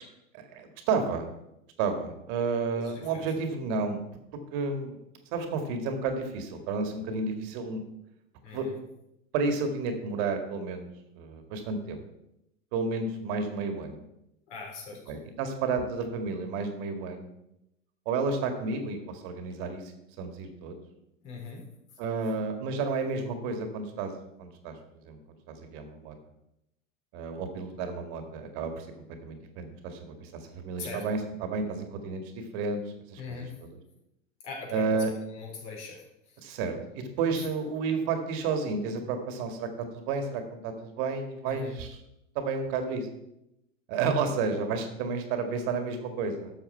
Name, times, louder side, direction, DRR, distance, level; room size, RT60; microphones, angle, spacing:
voice 1, 0.3-1.3 1.8-4.0 4.5-5.0 5.3-7.8 8.5-8.7 9.3-10.9 11.2-12.0 12.7-14.0 15.1-17.3 18.1-19.9 20.2-20.8 22.0-24.1 24.4-24.7 25.0-25.2 25.5-26.1 27.1-28.9 29.2-32.8 33.1-33.8 34.7-35.1 36.4-42.0 42.4-43.1 43.9-46.5, right 4 dB, 50° right, 6 dB, 1.9 m, -31 dB
voice 2, 8.4-8.7 14.5-15.0 21.2-21.6 30.8-31.0 33.2-33.5 34.4-35.0 35.4-36.0 41.4-41.8, left 4 dB, 60° left, 0 dB, 4.1 m, -40 dB
12.0 x 7.1 x 4.4 m, 0.85 s
hypercardioid pair, 95°, 40 cm